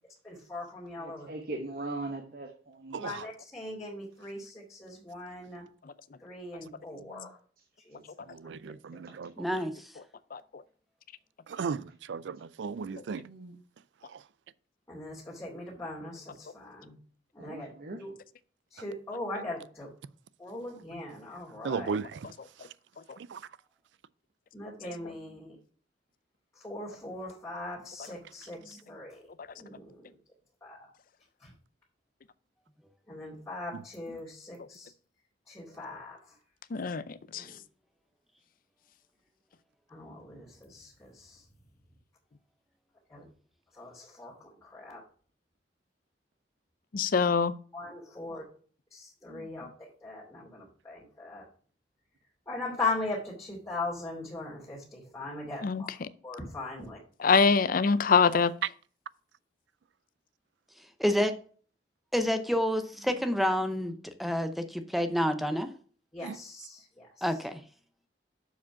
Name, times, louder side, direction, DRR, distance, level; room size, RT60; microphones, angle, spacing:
voice 1, 0.2-1.3 3.0-5.6 6.2-7.4 7.8-8.7 14.9-16.9 17.3-18.1 18.7-19.9 20.4-22.0 24.5-25.6 26.5-29.2 29.5-30.2 30.6-30.8 31.4-31.5 33.1-34.9 35.5-36.4 37.3-37.6 39.9-41.5 43.1-43.3 43.7-45.0 47.7-48.4 48.9-51.5 52.5-55.9 56.2-57.0 66.1-67.4, left 2 dB, 15° left, 2.4 m, -40 dB
voice 2, 1.0-3.0 7.1-7.3 13.2-13.6 17.4-18.0 49.3-49.5, right 2 dB, 55° right, 1.0 m, -40 dB
voice 3, 8.4-9.3 11.6-11.8 12.1-13.2 21.6-22.0, right 5 dB, 85° right, 0.4 m, -34 dB
voice 4, 9.4-9.7 61.0-61.3 62.1-65.7 67.2-67.6, equal, ahead, 0.6 m, -28 dB
voice 5, 36.7-37.0 37.3-37.4 47.0-47.5 55.6-55.8 57.2-58.5, left 5 dB, 50° left, 0.5 m, -23 dB
7.1 x 5.0 x 5.8 m
head